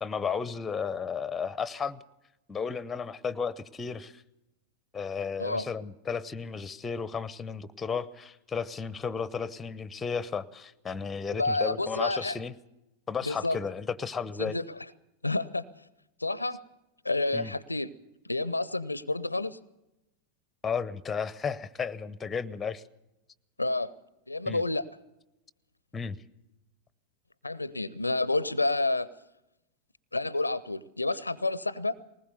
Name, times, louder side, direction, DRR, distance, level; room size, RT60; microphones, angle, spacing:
voice 1, 0.0-2.0 2.5-4.2 4.9-12.5 13.1-14.5 17.3-17.5 20.6-22.8 24.5-24.6 25.9-26.2, left 6 dB, 15° left, 19 dB, 0.9 m, -33 dB
voice 2, 11.3-12.4 13.3-13.6 14.4-14.6 15.2-15.6 16.2-16.6 17.0-17.9 18.2-19.6 23.6-23.9 24.3-24.9 27.4-29.1 30.1-31.9, left 2 dB, 85° left, 21 dB, 0.6 m, -29 dB
20.5 x 19.5 x 6.8 m, 0.94 s
figure-of-eight pair, 90°, 0 cm